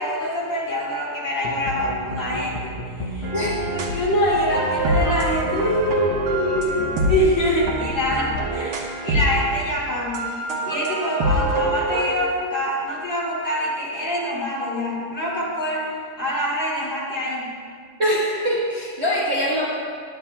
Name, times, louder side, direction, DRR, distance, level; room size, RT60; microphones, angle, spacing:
voice 1, 0.0-2.7 3.0-3.3 3.7-15.9 16.2-17.5, equal, 35° left, -7 dB, 2.9 m, -25 dB
sound 1, 1.4-8.5, left 2 dB, 85° left, 1.9 m, -33 dB
sound 2, 3.2-4.0 4.3-9.6 10.1-12.1, right 1 dB, 85° right, 2.1 m, -25 dB
voice 2, 18.0-19.6, equal, 35° right, -7 dB, 1.5 m, -23 dB
19.0 x 10.5 x 2.3 m, 2.1 s
omnidirectional pair, 2.3 m